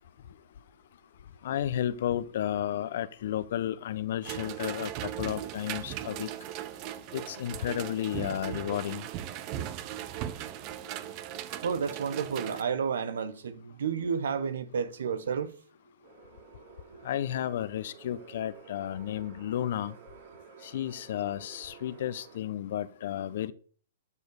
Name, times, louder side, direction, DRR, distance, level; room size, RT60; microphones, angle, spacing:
voice 1, 1.4-6.3 7.1-9.0 17.0-19.9 20.6-23.5, left 11 dB, 60° left, 1.0 m, -32 dB
sound 1, 4.2-12.6, right 11 dB, 40° right, 1.2 m, -38 dB
voice 2, 11.0-15.5, right 6 dB, 70° right, 1.5 m, -32 dB
sound 2, 16.0-22.4, right 6 dB, 55° right, 3.3 m, -52 dB
12.5 x 7.1 x 6.7 m
hypercardioid pair, 120°, 0 cm